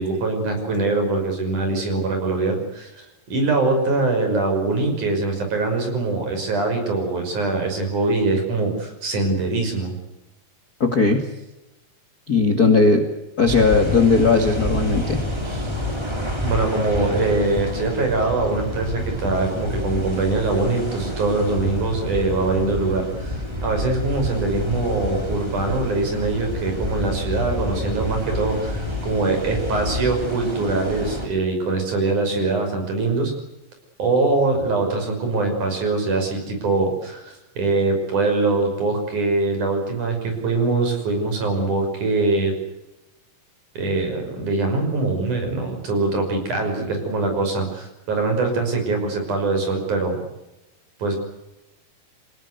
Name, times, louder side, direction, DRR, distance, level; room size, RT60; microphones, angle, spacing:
voice 1, 0.0-10.0 16.4-33.3 34.0-42.5 43.8-50.2 51.0-51.2, right 3 dB, 50° right, 4 dB, 7.3 m, -23 dB
voice 2, 10.8-11.3 12.3-13.1 13.4-15.7, left 4 dB, 35° left, 5 dB, 1.8 m, -18 dB
sound 1, 13.4-31.3, left 1 dB, 5° right, 4.1 m, -28 dB
27.5 x 19.5 x 8.3 m, 0.96 s
omnidirectional pair, 4.5 m